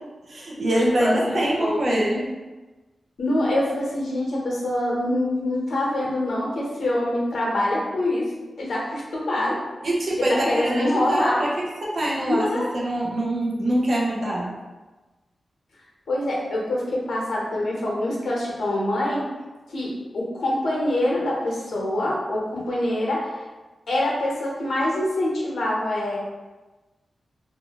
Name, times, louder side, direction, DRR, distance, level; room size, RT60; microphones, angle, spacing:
voice 1, 0.3-2.3 9.8-12.5 12.7-14.5, right 1 dB, 55° right, -5 dB, 0.7 m, -24 dB
voice 2, 1.0-1.8 3.2-8.3 8.6-9.6 10.2-11.4 12.2-12.7 16.1-19.2 19.7-23.4 23.9-26.2, left 1 dB, 80° left, -4 dB, 0.8 m, -25 dB
2.6 x 2.4 x 2.8 m, 1.2 s
wide cardioid pair, 105°, 0 cm